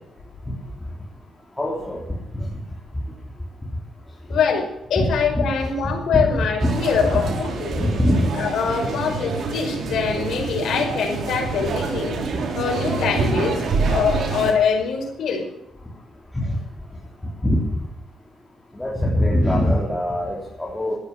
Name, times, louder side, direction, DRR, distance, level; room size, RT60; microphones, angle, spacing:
voice 1, 1.6-2.0 5.0-5.5 6.1-6.7 7.8-8.3 17.4-17.6 18.7-20.9, left 1 dB, 10° left, -4 dB, 3.6 m, -22 dB
voice 2, 4.3-7.9 8.3-12.2 12.5-15.5, left 6 dB, 75° left, 2 dB, 5.3 m, -23 dB
sound 1, 6.6-14.5, right 4 dB, 65° right, 3.8 m, -26 dB
14.0 x 11.0 x 8.4 m, 0.84 s
cardioid pair, 135°, 0 cm